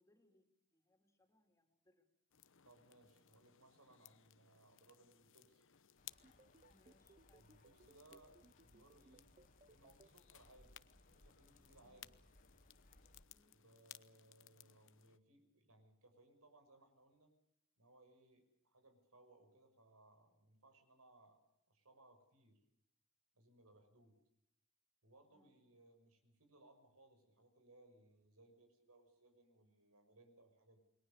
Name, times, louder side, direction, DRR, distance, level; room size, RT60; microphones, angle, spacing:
voice 1, 0.0-2.1 6.7-7.5 11.8-12.0 13.3-13.6 25.3-25.6, left 1 dB, 15° left, 5 dB, 3.7 m, -76 dB
sound 1, 2.3-15.2, left 12 dB, 65° left, 1.0 m, -63 dB
voice 2, 2.6-5.6 7.4-9.3 9.7-10.8 11.1-12.1 13.5-17.3 17.8-21.4 21.7-22.6 23.3-24.2 25.0-30.8, right 2 dB, 90° right, 7 dB, 6.4 m, -67 dB
sound 2, 6.0-13.2, left 1 dB, 40° left, 2.4 m, -69 dB
sound 3, 6.2-10.1, right 3 dB, 30° right, 0.9 m, -66 dB
28.5 x 22.0 x 6.9 m, 0.77 s
head